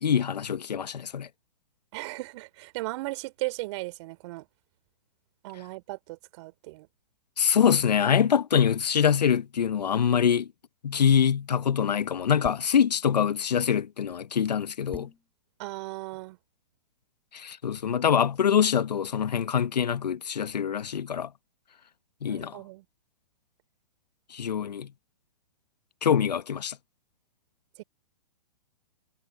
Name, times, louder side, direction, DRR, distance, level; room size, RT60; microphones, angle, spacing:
voice 1, 0.0-1.3 7.4-10.5 10.8-15.1 17.3-21.3 22.2-22.6 24.3-24.9 26.0-26.8, left 8 dB, 80° left, 1.3 m, -24 dB
voice 2, 1.9-4.4 5.4-6.9 15.6-16.4 22.3-22.8 27.8-27.9, right 21 dB, 45° right, 3.4 m, -36 dB
sound 1, 12.4-12.8 14.9-15.3, left 4 dB, 10° left, 3.4 m, -43 dB
hypercardioid pair, 130°, 21 cm